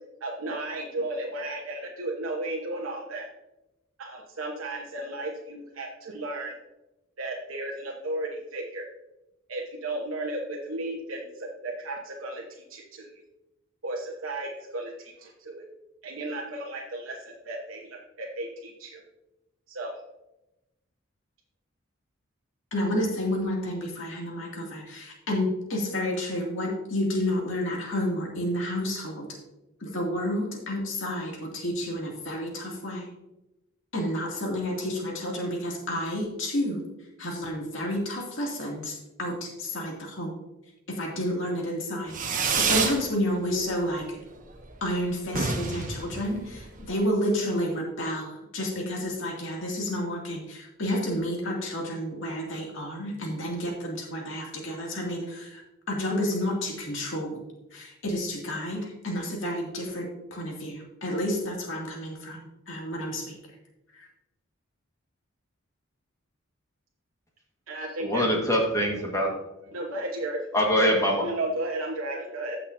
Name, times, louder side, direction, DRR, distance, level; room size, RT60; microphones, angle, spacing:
voice 1, 0.2-3.2 4.0-6.5 7.2-8.9 9.5-12.4 12.7-13.1 13.8-15.6 16.0-19.0 19.7-19.9 67.7-68.2 69.7-70.4 71.2-72.6, right 2 dB, 80° right, -1 dB, 1.1 m, -34 dB
voice 2, 22.7-29.3 29.8-33.1 33.9-36.8 37.2-40.4 40.9-44.2 44.8-55.6 55.9-57.4 57.7-63.4 63.9-64.1, left 1 dB, 65° left, -1 dB, 2.4 m, -30 dB
Fireworks, 42.1-43.0 43.4-43.9 44.2-44.3 44.6-44.7 44.9-45.0 45.3-46.9, right 5 dB, 40° right, 1.1 m, -28 dB
voice 3, 68.0-69.3 70.5-71.3, equal, 15° left, -1 dB, 1.5 m, -23 dB
15.0 x 6.0 x 2.7 m, 0.95 s
head